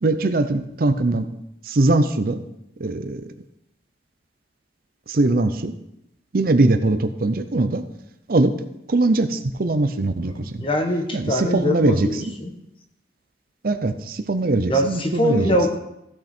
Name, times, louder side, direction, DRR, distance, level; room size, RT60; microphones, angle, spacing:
voice 1, 0.0-1.3 1.6-2.4 2.8-3.3 5.1-5.7 6.3-7.8 8.3-8.5 8.9-10.6 11.1-12.3 13.6-15.6, right 2 dB, 50° right, 9 dB, 0.6 m, -21 dB
voice 2, 10.2-12.5 14.7-15.8, equal, 30° left, 4 dB, 1.2 m, -23 dB
14.5 x 6.1 x 4.4 m, 0.83 s
head